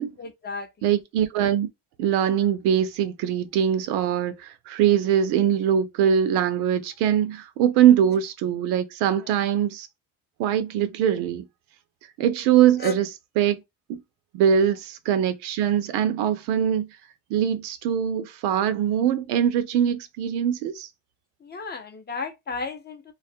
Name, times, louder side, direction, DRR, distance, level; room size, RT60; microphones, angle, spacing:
voice 1, 0.2-0.9 9.2-9.3 12.8-12.9 21.4-23.1, left 4 dB, 25° left, 0.5 m, -34 dB
voice 2, 0.8-1.7 2.0-9.9 10.4-11.5 12.2-13.1 13.4-13.6 13.9-14.0 14.3-16.9 17.3-20.9, right 9 dB, 90° right, 0.6 m, -22 dB
2.3 x 2.1 x 2.6 m
cardioid pair, 95°, 38 cm